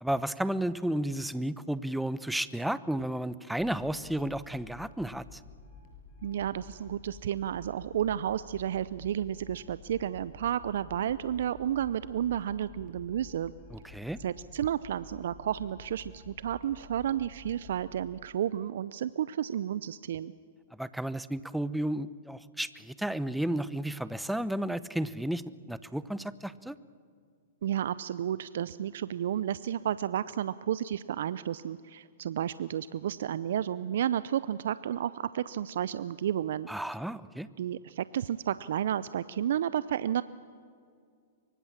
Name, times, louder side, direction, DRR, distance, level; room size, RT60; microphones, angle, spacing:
voice 1, 0.0-5.4 13.7-14.2 20.8-26.7 36.7-37.5, right 1 dB, ahead, 15 dB, 0.8 m, -33 dB
sound 1, 3.6-17.9, left 4 dB, 45° left, 6.7 m, -52 dB
voice 2, 6.2-13.5 14.2-20.3 27.6-36.7 37.6-40.2, right 10 dB, 65° right, 16 dB, 0.5 m, -32 dB
24.5 x 24.0 x 7.4 m, 2.2 s
hypercardioid pair, 115°, 0 cm